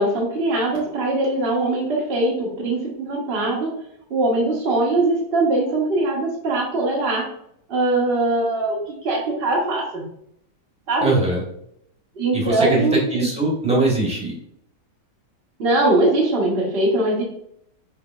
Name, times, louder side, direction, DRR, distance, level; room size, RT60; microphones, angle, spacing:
voice 1, 0.0-3.7 4.1-7.3 7.7-10.0 10.9-11.2 12.2-13.3 15.6-17.2, right 2 dB, 40° right, -3 dB, 1.1 m, -21 dB
voice 2, 11.0-11.4 12.3-14.3, right 2 dB, 5° right, -4 dB, 1.1 m, -21 dB
5.9 x 3.2 x 2.4 m, 0.73 s
omnidirectional pair, 1.9 m